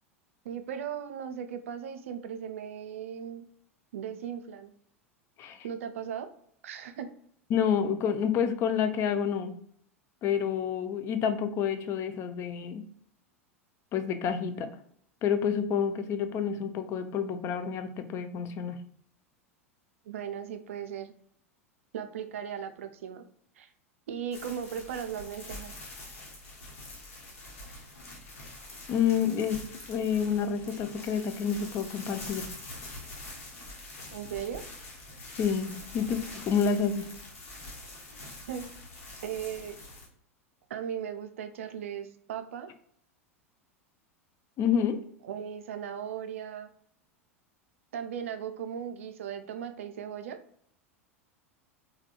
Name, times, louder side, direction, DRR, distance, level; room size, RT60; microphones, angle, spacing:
voice 1, 0.4-3.5 3.9-4.7 5.6-6.3 6.6-7.1 20.1-21.1 21.9-23.2 23.6-23.7 24.1-25.7 34.1-34.6 38.5-38.7 39.2-39.8 40.7-42.7 45.2-46.7 47.9-50.4, right 8 dB, 65° right, 8 dB, 0.3 m, -37 dB
voice 2, 7.5-9.5 10.2-12.8 13.9-14.7 15.2-18.8 28.9-29.6 29.9-32.5 35.4-37.0 44.6-45.0, left 7 dB, 35° left, 8 dB, 0.4 m, -28 dB
sound 1, 24.3-40.1, left 2 dB, 65° left, 1.0 m, -45 dB
3.5 x 2.2 x 2.3 m, 0.66 s
figure-of-eight pair, 85°, 8 cm